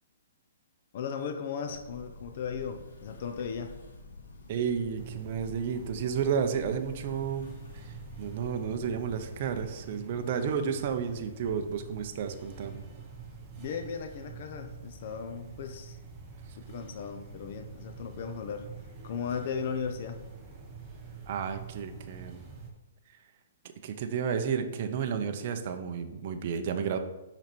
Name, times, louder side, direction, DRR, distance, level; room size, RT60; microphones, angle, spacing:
voice 1, 0.9-3.7 13.6-16.0 16.6-18.7 19.0-20.2, left 6 dB, 45° left, 6 dB, 0.6 m, -36 dB
sound 1, 1.7-9.6, left 2 dB, 80° left, 1.4 m, -49 dB
voice 2, 4.5-7.5 7.8-7.9 8.2-12.8 21.3-22.4 23.8-27.0, right 7 dB, 40° right, 6 dB, 0.6 m, -32 dB
sound 2, 4.9-22.7, right 5 dB, 15° right, 1.1 m, -47 dB
5.9 x 5.2 x 4.4 m, 1.0 s
hypercardioid pair, 160°, 0 cm